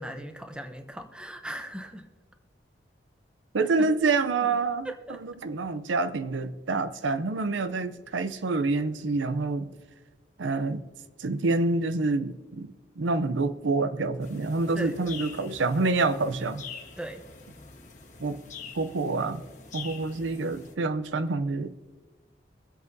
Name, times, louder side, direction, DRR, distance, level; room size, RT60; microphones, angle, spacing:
voice 1, 0.0-2.1 3.8-3.9 4.8-5.2 14.8-15.0 17.0-17.2, right 1 dB, 5° right, 6 dB, 0.7 m, -38 dB
voice 2, 3.5-4.9 5.2-9.7 10.4-10.8 11.2-16.6 18.2-18.4 18.7-19.4 19.7-21.8, right 3 dB, 90° right, 11 dB, 0.6 m, -27 dB
sound 1, 14.2-20.7, left 5 dB, 40° left, 1.2 m, -45 dB
24.0 x 8.0 x 2.7 m, 1.3 s
head